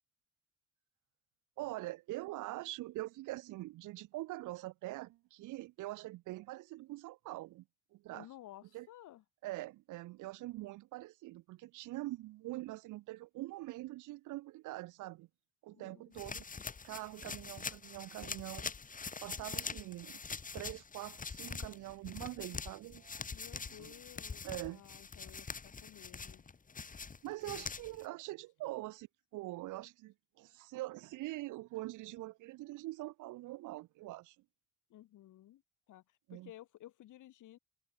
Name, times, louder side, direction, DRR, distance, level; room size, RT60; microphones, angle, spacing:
voice 1, 1.6-7.6 7.9-8.3 8.7-8.9 9.4-15.3 15.6-16.4 16.8-18.7 19.2-20.2 20.5-23.2 23.8-23.9 24.4-24.8 27.2-29.1 29.3-34.4 36.3-36.5, right 18 dB, 90° right, 0.8 m, -44 dB
voice 2, 8.1-9.2 15.7-16.2 23.3-26.4 27.4-27.6 34.9-35.6 35.9-37.6, left 14 dB, 80° left, 5.6 m, -55 dB
sound 1, 16.1-28.0, left 5 dB, 25° left, 1.4 m, -44 dB
cardioid pair, 90°, 30 cm